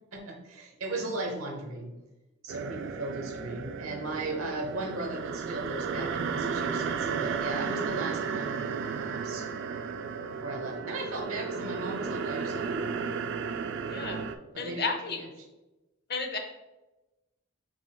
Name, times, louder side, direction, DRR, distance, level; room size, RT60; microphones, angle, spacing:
voice 1, 0.1-1.9 2.4-8.6 8.8-9.5 10.4-12.8 14.5-15.2, right 2 dB, 80° right, 1 dB, 0.9 m, -37 dB
sound 1, 2.5-14.4, right 6 dB, 60° right, 0.3 m, -33 dB
voice 2, 13.8-14.2 14.6-15.2 16.1-16.4, left 4 dB, 50° left, 4 dB, 0.6 m, -32 dB
7.4 x 3.0 x 2.2 m, 1.0 s
head